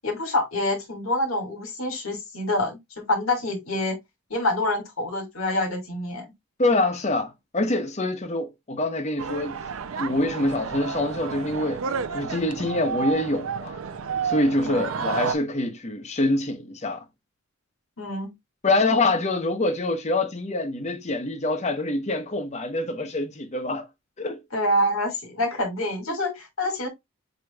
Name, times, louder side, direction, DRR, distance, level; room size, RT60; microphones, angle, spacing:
voice 1, 0.0-2.8 3.1-4.0 4.3-6.2 14.6-14.9 18.0-18.3 24.5-26.9, left 1 dB, 85° left, 2.1 m, -26 dB
voice 2, 6.6-9.6 10.0-11.8 12.1-13.8 14.2-17.0 18.6-23.9 24.2-24.4 26.1-26.2, left 2 dB, 35° left, 0.9 m, -25 dB
sound 1, 9.2-15.3, right 5 dB, 80° right, 0.5 m, -31 dB
7.8 x 2.9 x 2.3 m
head